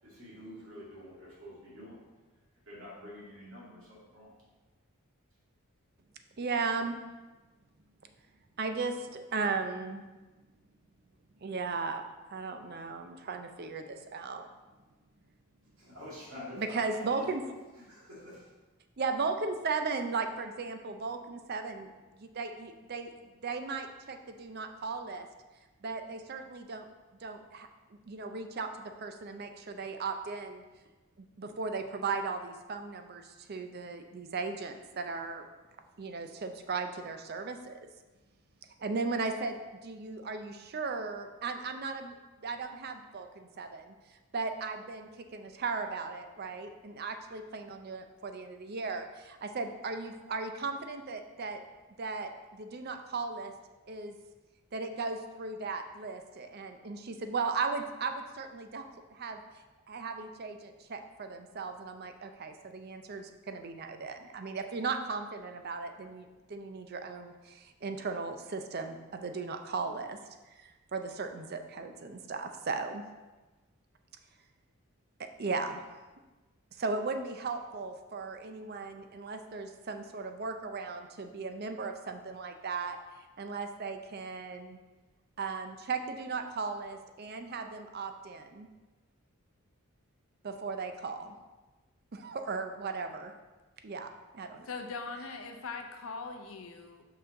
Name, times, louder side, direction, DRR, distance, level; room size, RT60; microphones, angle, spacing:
voice 1, 0.0-2.0 2.7-4.3 15.8-17.3 17.8-18.5, equal, 70° right, -6 dB, 2.2 m, -47 dB
voice 2, 6.4-7.0 8.6-10.0 11.4-12.0 12.3-14.4 16.5-17.4 19.0-21.9 22.1-23.1 23.4-25.3 25.8-26.9 27.2-27.7 28.1-30.6 31.2-35.5 36.0-37.8 38.8-42.2 42.4-43.9 44.3-51.6 52.0-53.5 53.9-54.2 54.7-58.8 59.1-59.4 59.9-70.2 70.6-73.0 75.2-75.8 76.8-83.0 83.4-84.8 85.4-88.7 90.4-91.4 92.1-93.3 93.8-94.7, right 4 dB, 45° right, 6 dB, 0.5 m, -36 dB
voice 3, 94.7-97.0, left 4 dB, 70° left, 5 dB, 0.7 m, -41 dB
5.7 x 5.5 x 3.7 m, 1.2 s
head